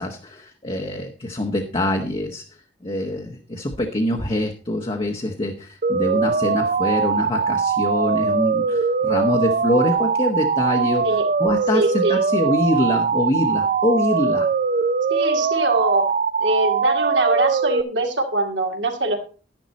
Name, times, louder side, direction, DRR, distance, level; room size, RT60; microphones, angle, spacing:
voice 1, 0.0-2.4 2.8-11.1 11.4-14.5, left 1 dB, 30° left, 2 dB, 1.1 m, -24 dB
sound 1, 5.8-17.8, right 5 dB, 45° right, 0.4 m, -21 dB
voice 2, 11.7-12.2 15.1-16.0 16.4-19.2, right 2 dB, 75° right, 3 dB, 2.4 m, -23 dB
11.0 x 10.5 x 4.1 m, 0.36 s
head